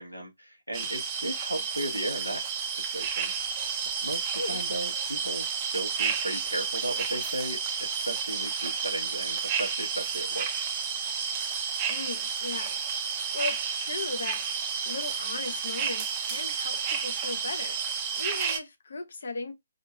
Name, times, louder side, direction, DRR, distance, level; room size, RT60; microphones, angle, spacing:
voice 1, 0.0-3.7 4.0-10.5, right 1 dB, 90° left, 1.0 m, -36 dB
sound 1, 0.7-18.6, right 6 dB, 25° right, 0.4 m, -31 dB
voice 2, 11.9-12.8 13.1-19.5, left 3 dB, 55° left, 0.6 m, -37 dB
2.7 x 2.4 x 2.2 m
figure-of-eight pair, 140°, 0 cm